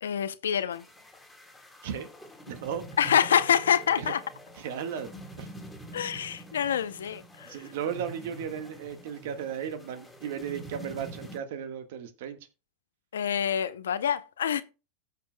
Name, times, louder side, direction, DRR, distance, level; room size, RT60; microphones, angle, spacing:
voice 1, 0.0-0.8 3.0-4.2 5.9-7.6 13.1-14.6, left 8 dB, 85° left, 0.6 m, -26 dB
sound 1, 0.7-11.4, right 1 dB, 5° left, 2.9 m, -46 dB
voice 2, 2.5-2.8 4.0-4.1 4.5-5.1 5.4-5.5 7.4-12.4, right 8 dB, 70° right, 1.5 m, -35 dB
16.5 x 6.7 x 2.2 m
hypercardioid pair, 100°, 0 cm